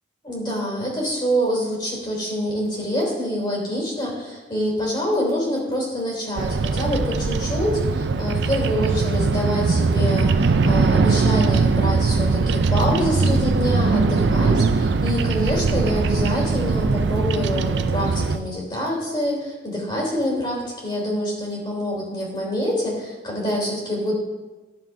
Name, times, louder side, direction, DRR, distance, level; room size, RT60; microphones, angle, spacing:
voice 1, 0.2-24.1, equal, 25° left, -3 dB, 3.3 m, -26 dB
Bird vocalization bird call bird song, 6.4-18.4, right 4 dB, 65° right, 0.4 m, -20 dB
14.5 x 7.2 x 2.7 m, 1.2 s
head